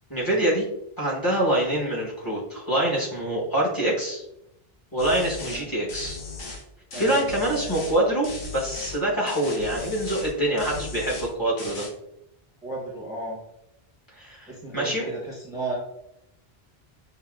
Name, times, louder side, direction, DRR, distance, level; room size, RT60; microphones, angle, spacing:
voice 1, 0.1-0.6 1.0-4.2 4.9-6.2 6.9-8.3 8.5-11.9 14.1-15.1, right 1 dB, 20° left, -6 dB, 1.0 m, -25 dB
sound 1, 5.0-5.6 5.9-6.6 6.9-9.0 9.3-10.3 10.6-11.3 11.6-11.9, left 3 dB, 80° left, 1.1 m, -37 dB
voice 2, 6.9-7.8 12.6-13.4 14.5-15.7, right 2 dB, 5° right, -4 dB, 0.8 m, -34 dB
5.7 x 2.6 x 2.3 m, 0.81 s
omnidirectional pair, 1.1 m